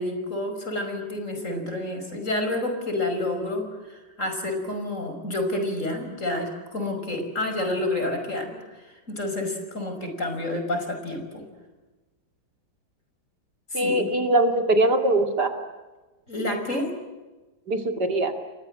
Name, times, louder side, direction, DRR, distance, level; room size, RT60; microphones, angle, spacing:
voice 1, 0.0-11.5 13.7-14.2 16.3-16.9, left 1 dB, 40° left, 5 dB, 6.0 m, -29 dB
voice 2, 13.7-15.5 17.7-18.3, right 1 dB, 60° right, 6 dB, 2.9 m, -22 dB
30.0 x 23.5 x 7.7 m, 1.2 s
omnidirectional pair, 2.0 m